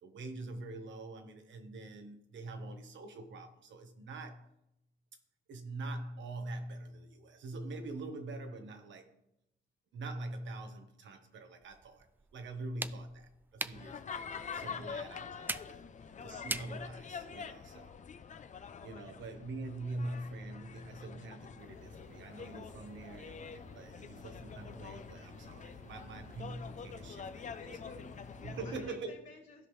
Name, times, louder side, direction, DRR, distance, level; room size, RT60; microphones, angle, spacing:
voice 1, 0.0-4.5 5.5-9.1 9.9-15.8 16.2-18.0 18.8-27.4 27.8-27.9 28.4-29.1, right 2 dB, 70° right, 1.3 m, -44 dB
sound 1, 11.6-17.5, right 2 dB, 10° right, 0.3 m, -44 dB
sound 2, 13.7-28.9, left 6 dB, 40° left, 0.6 m, -46 dB
sound 3, 21.6-28.6, right 2 dB, 85° right, 2.3 m, -57 dB
voice 2, 27.4-28.3 28.6-29.7, left 3 dB, 65° left, 2.6 m, -54 dB
15.5 x 5.3 x 3.2 m
cardioid pair, 90°, 20 cm